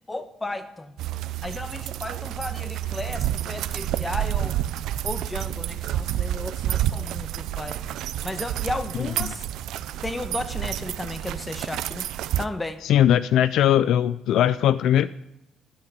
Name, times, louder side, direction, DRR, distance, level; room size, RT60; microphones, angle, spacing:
voice 1, 0.1-0.9 1.4-4.6 5.0-8.0 8.2-9.4 10.0-12.1 12.4-12.8, left 2 dB, 20° left, 10 dB, 1.4 m, -34 dB
sound 1, 1.0-12.5, right 12 dB, 75° right, 0.5 m, -29 dB
voice 2, 12.8-15.1, left 11 dB, 70° left, 16 dB, 0.4 m, -20 dB
13.0 x 5.9 x 9.3 m, 0.85 s
supercardioid pair, 60°, 0 cm